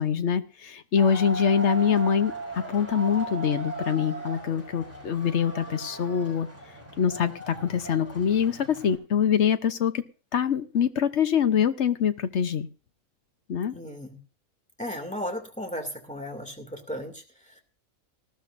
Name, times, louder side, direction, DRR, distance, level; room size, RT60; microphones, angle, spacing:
voice 1, 0.0-6.5 7.0-10.0 10.3-12.7 13.5-13.7, left 7 dB, 60° left, 11 dB, 1.1 m, -24 dB
sound 1, 1.0-9.0, right 2 dB, 10° right, 7.2 m, -38 dB
voice 2, 13.7-14.2 14.8-17.6, equal, 5° left, 3 dB, 2.4 m, -35 dB
19.0 x 13.5 x 2.6 m, 0.35 s
omnidirectional pair, 1.4 m